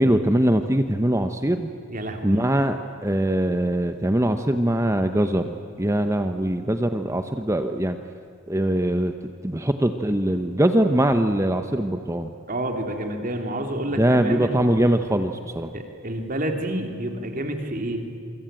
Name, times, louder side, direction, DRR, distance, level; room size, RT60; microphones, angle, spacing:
voice 1, 0.0-1.7 2.2-2.8 3.0-8.0 8.5-9.1 9.4-12.3 14.0-15.7, right 1 dB, 15° right, 7 dB, 0.8 m, -22 dB
voice 2, 1.9-2.4 12.5-14.6 15.7-18.0, right 1 dB, 40° right, 4 dB, 3.1 m, -29 dB
27.5 x 24.0 x 9.0 m, 2.6 s
head